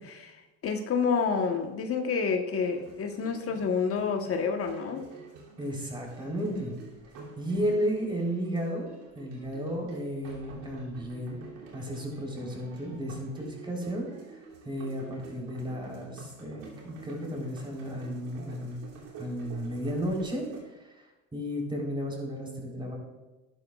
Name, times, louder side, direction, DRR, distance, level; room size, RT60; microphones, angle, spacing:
voice 1, 0.1-5.0, left 5 dB, 45° left, 4 dB, 1.1 m, -29 dB
sound 1, 2.6-20.6, right 3 dB, 70° right, 2.7 m, -49 dB
voice 2, 5.6-6.8 7.4-8.9 9.2-11.4 11.7-14.1 14.7-18.8 19.2-20.4 20.8-20.9 21.3-23.0, equal, 15° right, -1 dB, 3.7 m, -33 dB
12.0 x 11.0 x 2.4 m, 1.1 s
supercardioid pair, 95°, 33 cm